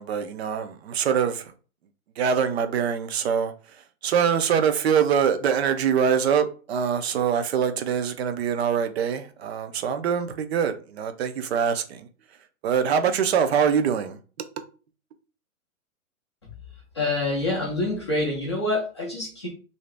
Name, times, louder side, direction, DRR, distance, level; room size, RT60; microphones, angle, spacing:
voice 1, 0.0-1.5 2.2-3.5 4.0-12.1 12.6-14.5, right 7 dB, 50° right, 0.6 m, -24 dB
voice 2, 16.9-19.5, left 2 dB, 20° left, 0.4 m, -26 dB
2.9 x 2.7 x 3.3 m
hypercardioid pair, 160°, 43 cm